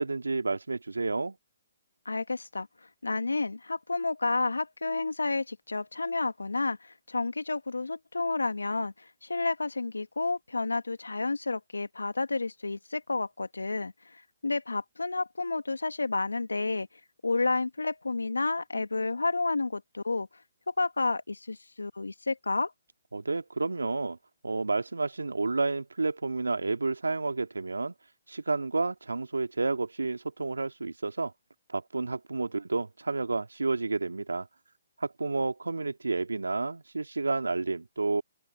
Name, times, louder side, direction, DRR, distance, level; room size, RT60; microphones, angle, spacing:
voice 1, 0.0-1.4 23.1-24.2 24.4-27.9 28.3-31.3 31.7-34.5 35.0-38.2, right 3 dB, 85° right, 2.3 m, -30 dB
voice 2, 2.1-2.7 3.0-16.9 17.2-20.3 20.7-22.7, left 3 dB, 85° left, 1.7 m, -30 dB
open air
figure-of-eight pair, 135°, 0 cm